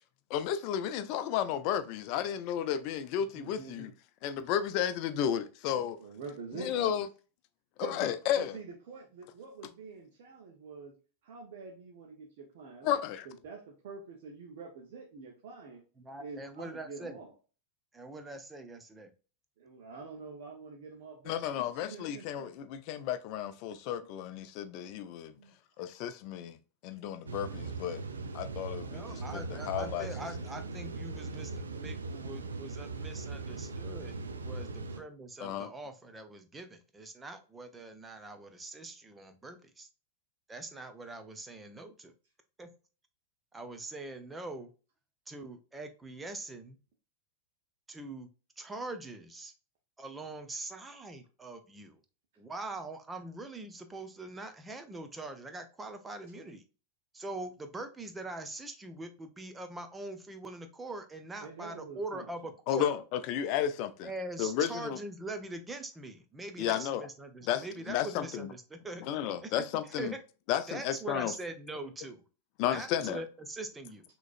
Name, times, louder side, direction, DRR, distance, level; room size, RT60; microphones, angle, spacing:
voice 1, 0.3-3.9 4.2-6.0 6.6-7.1 7.8-8.5 12.8-13.2 21.3-25.3 25.8-26.6 26.8-28.0 28.3-30.1 35.4-35.7 62.7-64.1 64.4-65.0 66.6-67.1 67.5-68.5 69.1-70.1 70.5-71.3 72.6-73.2, left 10 dB, 45° left, 0.6 m, -33 dB
voice 2, 3.2-3.9 5.6-7.0 7.8-11.0 11.2-15.8 16.2-17.3 19.6-22.5 25.4-25.5 61.4-62.3 67.7-67.9, right 4 dB, 55° right, 1.1 m, -46 dB
voice 3, 16.0-17.2 17.9-19.1 28.9-34.1 34.4-39.9 40.5-42.1 42.6-42.7 43.5-44.7 45.3-46.8 47.9-48.3 48.6-49.5 50.0-52.0 52.4-56.6 57.1-62.9 64.0-69.1 69.4-69.5 69.8-70.2 70.7-72.2 72.7-74.0, right 2 dB, 10° right, 0.8 m, -43 dB
sound 1, 27.3-35.0, right 3 dB, 70° right, 0.6 m, -39 dB
6.1 x 3.1 x 2.5 m
figure-of-eight pair, 90°, 0 cm